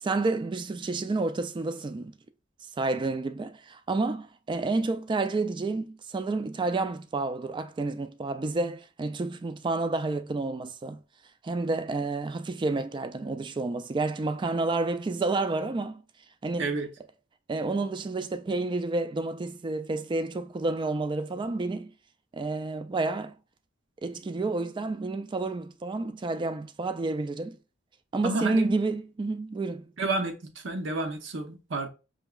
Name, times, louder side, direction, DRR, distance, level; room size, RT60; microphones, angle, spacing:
voice 1, 0.0-2.1 2.6-11.0 11.4-16.0 16.4-16.8 17.5-21.9 22.3-23.4 24.0-27.6 28.1-29.9, right 3 dB, 25° right, 0.3 m, -30 dB
voice 2, 28.2-28.7 30.0-30.3 30.6-31.9, right 2 dB, 65° right, 0.8 m, -30 dB
5.3 x 2.9 x 2.3 m
head